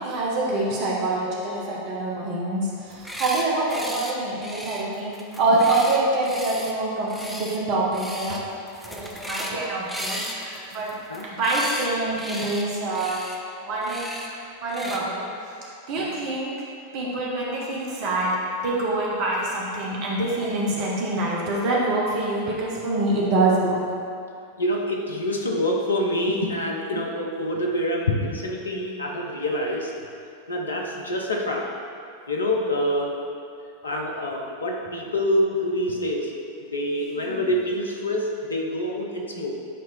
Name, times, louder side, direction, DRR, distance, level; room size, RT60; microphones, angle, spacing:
voice 1, 0.0-8.5 8.8-11.0 11.2-13.3 13.6-14.1 14.6-15.3 15.9-16.5 16.9-23.8 37.2-37.4, right 2 dB, 45° right, -4 dB, 1.0 m, -25 dB
sound 1, 2.9-3.4 3.7-4.1 4.4-6.7 7.1-7.6 7.9-8.4 8.7-9.6 9.9-11.9 12.2-12.6 12.9-13.4 13.8-14.3 14.7-15.0, equal, ahead, 0.7 m, -35 dB
voice 2, 24.6-29.9 30.5-31.7 32.3-33.1 33.8-36.3 36.6-39.5, left 1 dB, 75° left, 0 dB, 0.7 m, -26 dB
8.0 x 3.0 x 4.3 m, 2.6 s
figure-of-eight pair, 90°, 0 cm